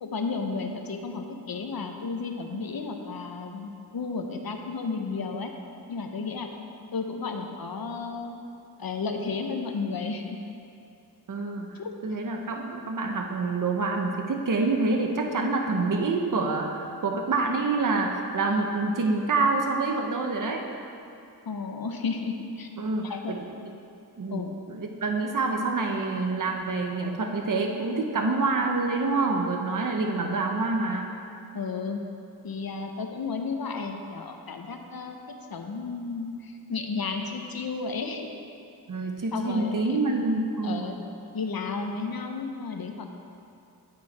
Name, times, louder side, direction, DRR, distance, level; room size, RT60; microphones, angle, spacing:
voice 1, 0.0-5.5 5.9-6.5 6.9-8.4 8.8-10.4 11.7-11.9 21.4-22.7 23.0-23.4 24.3-24.5 31.5-32.0 32.4-38.3 39.3-40.0 40.6-41.0 41.3-43.0, left 4 dB, 60° left, 4 dB, 1.0 m, -33 dB
voice 2, 11.3-11.7 12.0-20.7 22.8-23.7 24.2-24.4 24.7-31.1 38.9-40.9, right 3 dB, 50° right, 3 dB, 1.0 m, -27 dB
9.5 x 9.4 x 4.3 m, 2.6 s
wide cardioid pair, 95°, 40 cm